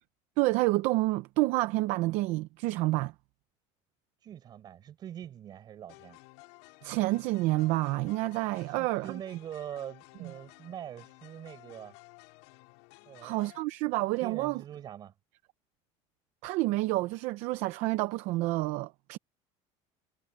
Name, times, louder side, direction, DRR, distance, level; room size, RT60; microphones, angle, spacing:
voice 1, 0.4-3.1 6.8-9.2 10.2-10.3 13.2-14.6 16.4-19.2, right 19 dB, 55° right, 0.7 m, -29 dB
voice 2, 4.2-6.2 8.8-11.9 13.0-13.4 14.2-15.1, right 10 dB, 30° right, 5.2 m, -43 dB
sound 1, 5.9-13.6, left 27 dB, 85° left, 4.9 m, -55 dB
cardioid pair, 175°, 14 cm